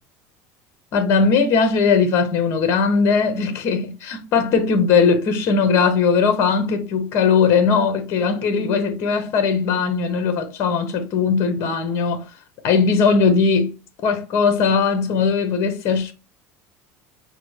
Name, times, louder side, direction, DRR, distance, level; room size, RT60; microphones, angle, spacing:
voice 1, 0.9-12.2 12.6-13.7 14.0-16.1, left 5 dB, 45° left, 0.8 m, -19 dB
5.7 x 2.1 x 3.2 m
cardioid pair, 145°, 7 cm